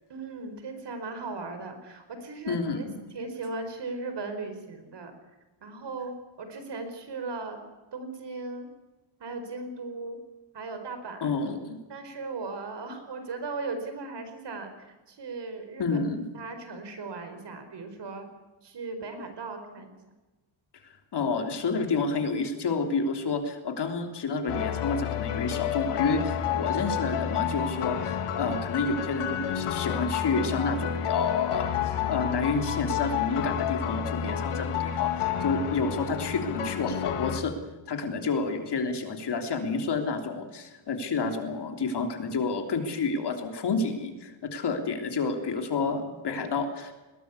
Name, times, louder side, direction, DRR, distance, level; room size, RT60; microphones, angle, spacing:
voice 1, 0.1-2.8 3.1-5.1 5.6-7.6 7.9-8.7 9.2-10.2 10.5-11.3 11.9-16.0 16.3-18.3 18.6-19.9 29.4-29.5, right 3 dB, 55° right, 8 dB, 4.7 m, -37 dB
voice 2, 2.5-2.9 11.2-11.8 15.8-16.2 20.8-37.5 37.9-46.9, left 4 dB, 50° left, 5 dB, 3.4 m, -29 dB
sound 1, 24.5-37.4, left 9 dB, 85° left, 2.3 m, -30 dB
21.0 x 18.5 x 8.4 m, 1.1 s
cardioid pair, 130°, 50 cm